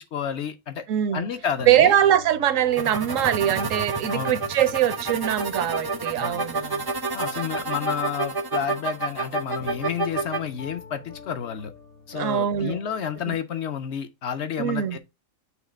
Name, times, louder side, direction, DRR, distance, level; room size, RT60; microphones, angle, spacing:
voice 1, 0.0-0.9 1.1-1.9 3.0-3.1 4.1-4.4 6.2-6.4 7.1-11.7 12.1-15.0, left 8 dB, 60° left, 0.8 m, -30 dB
voice 2, 0.9-1.3 1.7-6.9 12.1-12.8 13.3-13.4 14.6-15.0, right 10 dB, 70° right, 1.0 m, -22 dB
sound 1, 1.1-13.4, left 4 dB, 85° left, 3.8 m, -46 dB
sound 2, 2.7-10.4, right 3 dB, 30° right, 0.4 m, -29 dB
6.5 x 2.9 x 5.0 m
omnidirectional pair, 1.4 m